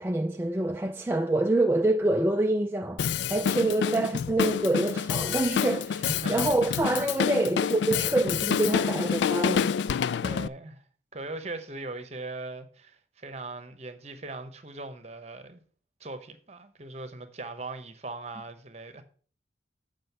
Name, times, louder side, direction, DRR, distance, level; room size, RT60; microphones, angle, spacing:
voice 1, 0.0-10.0, right 2 dB, 10° right, 0.3 m, -26 dB
Drum kit, 3.0-10.5, left 7 dB, 75° left, 0.3 m, -28 dB
voice 2, 6.0-6.5 10.2-10.8 11.1-15.6 16.0-19.0, right 2 dB, 35° right, 1.0 m, -39 dB
7.7 x 5.2 x 6.6 m
head